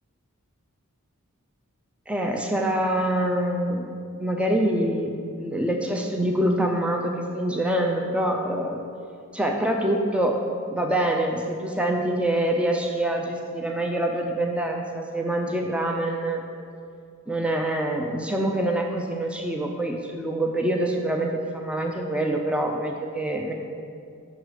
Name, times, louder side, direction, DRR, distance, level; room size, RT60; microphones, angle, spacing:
voice 1, 2.1-5.1 5.4-8.8 9.3-10.4 10.7-16.4 17.3-23.5, right 1 dB, 5° right, 1 dB, 0.4 m, -25 dB
6.5 x 6.2 x 4.8 m, 2.3 s
head